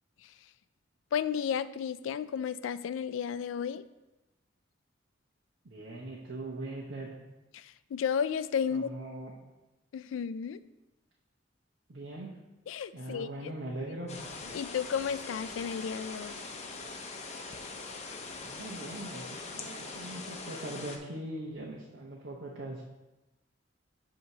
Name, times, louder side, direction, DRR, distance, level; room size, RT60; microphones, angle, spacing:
voice 1, 1.1-3.9 7.5-8.9 9.9-10.6 12.7-13.5 14.5-16.4, left 7 dB, 80° left, 15 dB, 0.3 m, -33 dB
voice 2, 5.6-7.2 8.7-9.3 11.9-12.4 12.9-14.2 18.4-22.8, right 1 dB, 65° right, -3 dB, 0.9 m, -41 dB
sound 1, 14.1-21.0, left 3 dB, 35° left, 0.7 m, -42 dB
8.3 x 2.9 x 5.9 m, 1.0 s
head